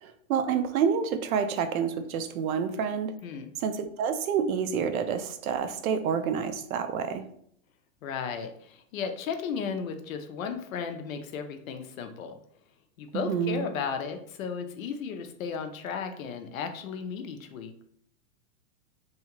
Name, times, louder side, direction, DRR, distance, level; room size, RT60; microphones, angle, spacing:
voice 1, 0.0-3.1 3.6-7.2 13.1-13.7, right 7 dB, 80° right, 9 dB, 0.5 m, -28 dB
voice 2, 8.0-12.4 13.0-17.7, left 6 dB, 70° left, 7 dB, 0.6 m, -35 dB
2.8 x 2.3 x 2.9 m, 0.68 s
supercardioid pair, 170°, 42 cm